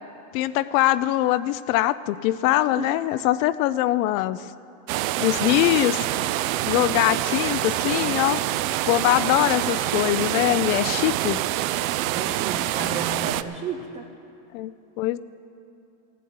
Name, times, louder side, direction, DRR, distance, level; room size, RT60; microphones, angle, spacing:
voice 1, 0.3-4.5 5.2-6.3 6.7-8.4 8.8-11.4 14.5-14.7 15.0-15.2, left 15 dB, 60° left, 14 dB, 0.5 m, -22 dB
sound 1, 4.9-13.4, right 14 dB, 60° right, 0.6 m, -26 dB
voice 2, 12.1-14.1, right 4 dB, 15° right, 2 dB, 0.3 m, -33 dB
16.0 x 7.7 x 9.3 m, 2.7 s
supercardioid pair, 140°, 46 cm